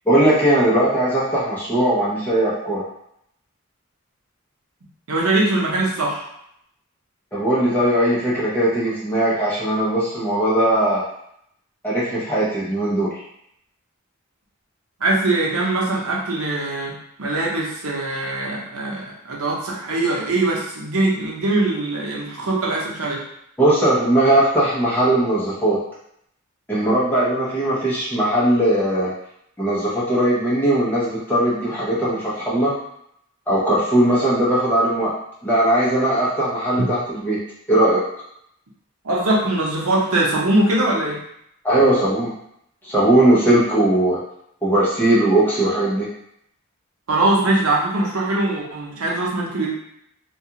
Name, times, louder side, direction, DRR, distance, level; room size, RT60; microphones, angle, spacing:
voice 1, 0.1-2.8 7.3-11.0 11.8-13.2 23.6-25.8 26.7-29.1 29.6-32.7 33.5-35.1 35.4-37.4 37.7-38.0 41.6-42.3 42.8-44.2 44.6-46.1, right 1 dB, 10° left, -9 dB, 0.7 m, -19 dB
voice 2, 5.1-6.3 15.0-23.2 36.8-36.9 39.0-41.2 47.1-49.7, right 2 dB, 80° right, -3 dB, 0.7 m, -22 dB
2.4 x 2.3 x 2.8 m, 0.74 s
head